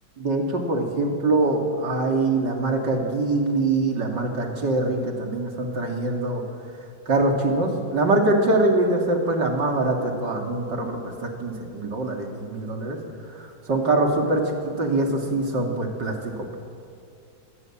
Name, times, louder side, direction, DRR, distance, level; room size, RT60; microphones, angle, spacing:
voice 1, 0.2-6.4 7.1-13.0 13.3-16.6, right 2 dB, 70° right, 2 dB, 3.3 m, -24 dB
25.0 x 19.0 x 7.4 m, 2.4 s
omnidirectional pair, 2.0 m